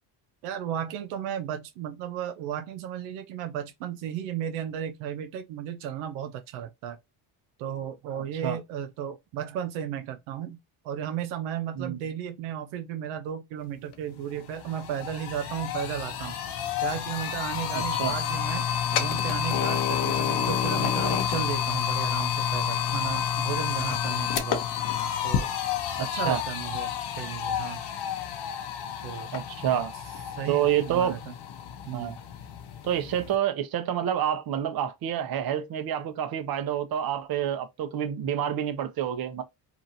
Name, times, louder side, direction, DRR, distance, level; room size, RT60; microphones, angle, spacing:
voice 1, 0.4-7.0 7.6-10.6 10.8-16.4 16.8-18.7 18.9-24.6 25.2-25.5 26.0-27.8 29.0-29.3 30.3-31.3 31.9-32.2, right 9 dB, 90° right, 0.6 m, -34 dB
sound 1, 13.9-14.0 14.3-33.4, left 9 dB, 60° left, 0.8 m, -29 dB
voice 2, 17.7-18.1 26.0-26.4 29.3-29.9 30.5-31.2 31.9-32.1 32.8-39.4, right 10 dB, 50° right, 0.8 m, -28 dB
2.9 x 2.4 x 2.6 m
supercardioid pair, 80°, 46 cm